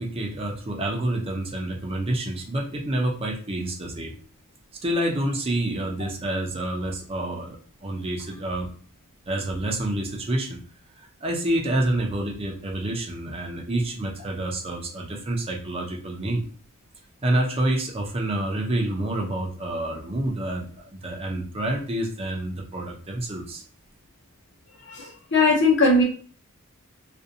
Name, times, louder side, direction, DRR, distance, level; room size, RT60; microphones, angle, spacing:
voice 1, 0.0-4.1 4.8-8.7 9.3-10.6 11.2-16.4 17.2-23.6, right 1 dB, 25° right, 0 dB, 0.5 m, -28 dB
voice 2, 24.8-26.0, left 2 dB, 60° left, 0 dB, 0.8 m, -19 dB
2.5 x 2.2 x 2.6 m, 0.43 s
head